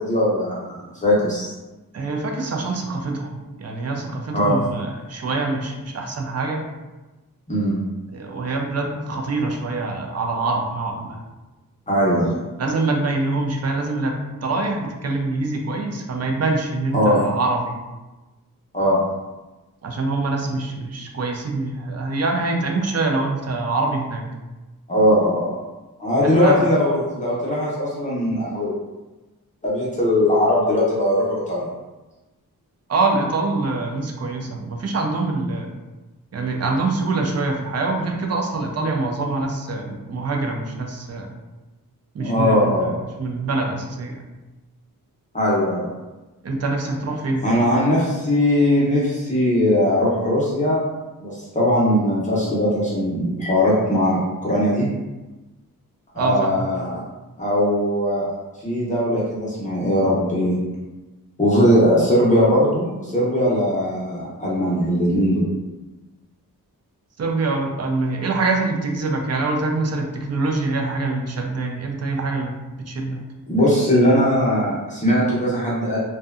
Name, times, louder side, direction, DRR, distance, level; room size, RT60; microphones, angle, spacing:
voice 1, 0.0-1.5 4.3-4.6 7.5-7.8 11.9-12.4 16.9-17.3 18.7-19.0 24.9-25.5 26.0-28.7 29.6-31.6 42.2-42.9 45.3-45.8 47.4-50.8 51.2-54.9 56.1-57.0 57.4-58.3 58.6-60.6 61.4-65.4 73.5-76.0, equal, 20° left, -8 dB, 0.6 m, -19 dB
voice 2, 1.9-6.7 8.1-11.2 12.6-14.1 14.4-17.7 19.8-24.2 26.2-26.7 32.9-35.7 36.3-41.3 42.1-42.9 43.2-44.2 46.4-47.7 56.2-56.7 67.2-73.2, right 3 dB, 50° right, 1 dB, 0.4 m, -24 dB
2.7 x 2.1 x 2.3 m, 1.1 s
wide cardioid pair, 115°, 35 cm